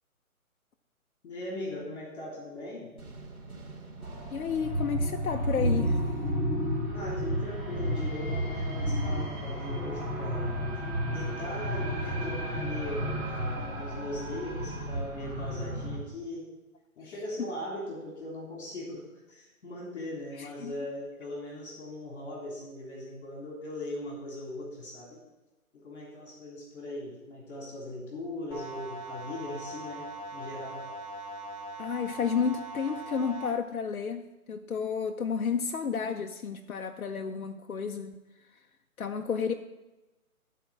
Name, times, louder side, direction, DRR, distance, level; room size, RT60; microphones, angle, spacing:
voice 1, 1.2-2.9 6.9-10.6 11.1-16.4 17.0-25.2 25.7-30.1 30.3-30.8, left 1 dB, 50° left, -2 dB, 3.2 m, -39 dB
sound 1, 3.0-6.4, right 3 dB, 80° right, 2.7 m, -47 dB
sound 2, 4.0-16.0, equal, 10° right, 1.1 m, -32 dB
voice 2, 4.3-6.0 20.4-20.7 31.8-38.2 39.0-39.5, left 6 dB, 70° left, 4 dB, 0.8 m, -31 dB
sound 3, 28.5-33.5, right 1 dB, 10° left, 0.8 m, -41 dB
13.0 x 4.6 x 7.2 m, 1.1 s
figure-of-eight pair, 150°, 43 cm